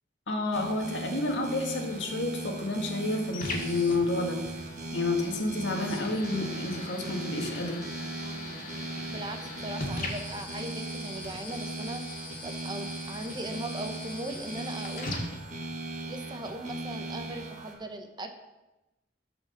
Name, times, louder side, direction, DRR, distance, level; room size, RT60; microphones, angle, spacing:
voice 1, 0.3-4.4 4.9-7.9, left 2 dB, 85° left, 2 dB, 1.6 m, -30 dB
sound 1, 0.5-17.7, right 2 dB, 45° right, 1.7 m, -38 dB
sound 2, 2.0-16.0, left 2 dB, 50° left, 1.9 m, -41 dB
voice 2, 9.1-12.0 12.4-15.2 16.1-18.3, right 1 dB, 25° right, 6 dB, 0.9 m, -39 dB
11.0 x 5.0 x 6.6 m, 1.0 s
head